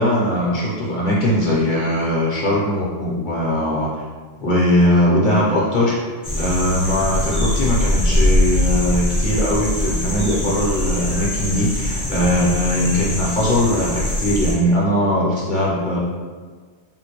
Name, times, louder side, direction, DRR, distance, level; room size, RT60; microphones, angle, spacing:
voice 1, 0.0-3.9 4.4-6.0 6.3-16.0, left 1 dB, 50° left, -6 dB, 0.7 m, -20 dB
sound 1, 6.2-14.5, left 1 dB, 15° left, 0.5 m, -22 dB
3.8 x 2.1 x 2.9 m, 1.5 s
omnidirectional pair, 1.2 m